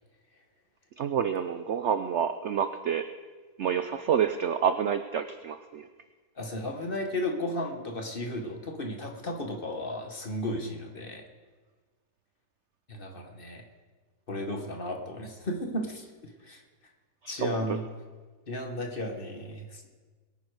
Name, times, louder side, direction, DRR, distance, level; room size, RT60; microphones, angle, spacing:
voice 1, 1.0-3.0 3.6-5.9 17.2-17.6, right 8 dB, 65° right, 10 dB, 0.7 m, -28 dB
voice 2, 6.4-11.2 12.9-13.6 14.3-16.6 17.3-17.8 18.5-19.9, left 1 dB, 35° left, 3 dB, 1.3 m, -34 dB
21.5 x 9.5 x 4.8 m, 1.4 s
omnidirectional pair, 1.8 m